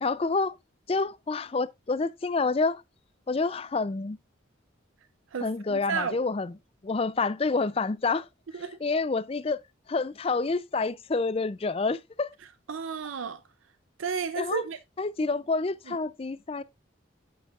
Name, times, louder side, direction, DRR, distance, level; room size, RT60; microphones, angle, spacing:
voice 1, 0.0-0.6 0.9-2.8 3.3-4.2 5.4-6.5 6.8-8.3 8.5-9.6 9.9-12.3 14.4-14.6 15.0-16.6, left 3 dB, 30° left, 0.4 m, -28 dB
voice 2, 5.3-6.2 8.6-8.8 12.7-13.4 14.0-14.8 15.9-16.0, right 6 dB, 85° right, 0.5 m, -32 dB
8.8 x 7.8 x 2.4 m
head